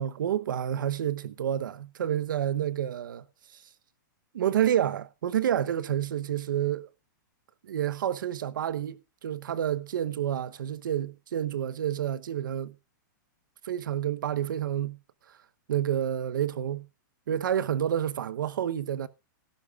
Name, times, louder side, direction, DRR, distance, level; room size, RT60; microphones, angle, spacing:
voice 1, 0.0-3.2 4.3-6.9 7.6-12.7 13.6-15.0 15.7-16.9 17.3-19.1, right 10 dB, 85° right, 0.9 m, -29 dB
18.5 x 12.0 x 2.4 m
supercardioid pair, 175°, 11 cm